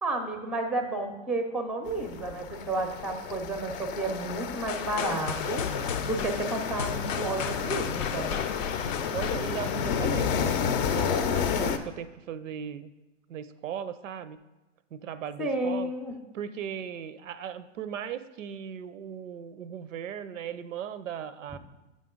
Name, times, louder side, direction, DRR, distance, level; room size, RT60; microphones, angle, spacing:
voice 1, 0.0-5.6 6.0-8.3 15.4-16.2, right 2 dB, ahead, 6 dB, 0.5 m, -31 dB
sound 1, 1.9-11.8, left 7 dB, 45° left, 0.5 m, -31 dB
sound 2, 4.7-10.6, left 6 dB, 85° left, 0.6 m, -36 dB
voice 2, 9.1-12.9 13.3-14.4 14.9-15.9 16.3-21.6, right 9 dB, 85° right, 14 dB, 0.5 m, -37 dB
7.3 x 5.2 x 3.7 m, 1.1 s
hypercardioid pair, 115°, 37 cm